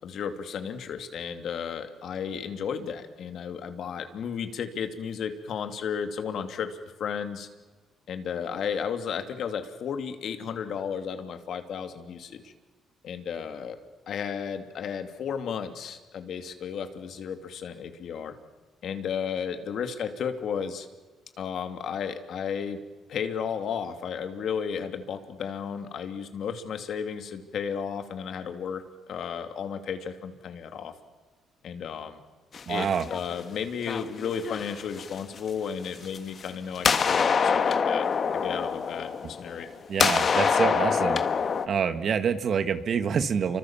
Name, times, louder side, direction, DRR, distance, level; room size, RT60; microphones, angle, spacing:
voice 1, 0.0-7.5 8.1-12.5 13.0-13.8 14.1-18.3 18.8-20.9 21.4-22.8 23.1-30.9 31.6-32.2 32.7-38.1 38.3-39.7, left 7 dB, 65° left, 7 dB, 2.7 m, -33 dB
sound 1, 32.5-33.4 33.9-35.4 36.0-36.5 36.8-39.7 40.0-41.7, left 6 dB, 45° left, 1.6 m, -25 dB
voice 2, 32.7-33.1 39.9-41.2 41.7-43.6, right 7 dB, 55° right, 10 dB, 1.7 m, -26 dB
29.0 x 25.0 x 7.4 m, 1.3 s
cardioid pair, 95°, 0 cm